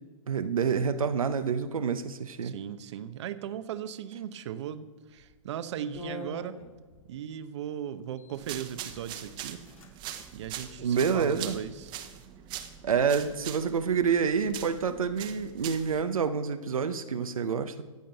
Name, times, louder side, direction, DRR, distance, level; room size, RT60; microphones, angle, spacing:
voice 1, 0.3-2.5 10.8-11.6 12.8-17.8, right 6 dB, 85° right, 9 dB, 0.8 m, -28 dB
voice 2, 2.4-4.8 5.1-6.6 7.1-9.6 10.3-11.9, right 9 dB, 55° right, 12 dB, 0.8 m, -37 dB
sound 1, 5.1-5.3 5.9-7.1 8.0-8.5 9.1-9.2 9.4-9.9 10.2-10.3 10.8-11.5, left 1 dB, 75° left, 2.7 m, -45 dB
sound 2, 8.3-16.0, right 11 dB, 25° right, 1.0 m, -42 dB
14.5 x 5.2 x 7.9 m, 1.4 s
hypercardioid pair, 135°, 17 cm